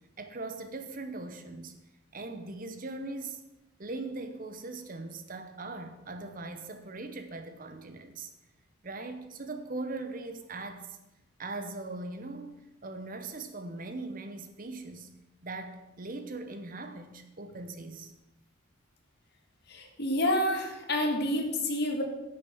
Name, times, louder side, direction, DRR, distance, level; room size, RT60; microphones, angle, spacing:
voice 1, 0.2-1.8 2.1-3.4 3.8-8.3 8.8-11.0 11.4-12.5 12.8-15.1 15.4-18.1, right 2 dB, 40° right, 8 dB, 0.9 m, -40 dB
voice 2, 19.7-22.0, left 1 dB, 50° left, 3 dB, 1.9 m, -28 dB
10.5 x 6.8 x 7.0 m, 0.95 s
head